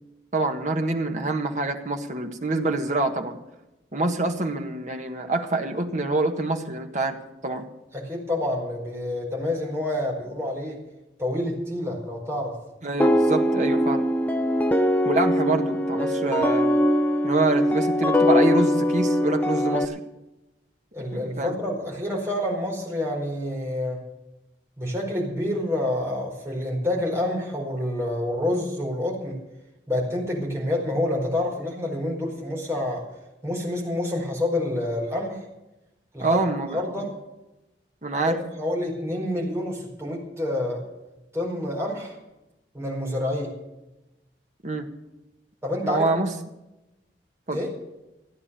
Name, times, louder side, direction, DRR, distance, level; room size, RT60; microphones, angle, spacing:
voice 1, 0.3-3.4 3.9-7.2 7.4-7.6 12.8-14.0 15.0-16.8 17.2-20.0 21.1-21.6 36.2-37.1 38.0-38.4 44.6-44.9 45.8-46.3 47.5-47.6, right 2 dB, 45° right, 4 dB, 1.6 m, -26 dB
voice 2, 7.9-10.8 11.2-12.6 20.9-24.0 24.8-29.4 29.9-33.1 33.4-35.4 36.1-36.4 36.7-37.1 38.3-40.8 41.3-42.1 42.7-43.5 45.6-46.1 47.5-47.7, left 1 dB, 15° right, -3 dB, 4.8 m, -28 dB
sound 1, 13.0-19.8, equal, 10° left, 0.9 m, -22 dB
15.5 x 9.6 x 7.0 m, 0.96 s
head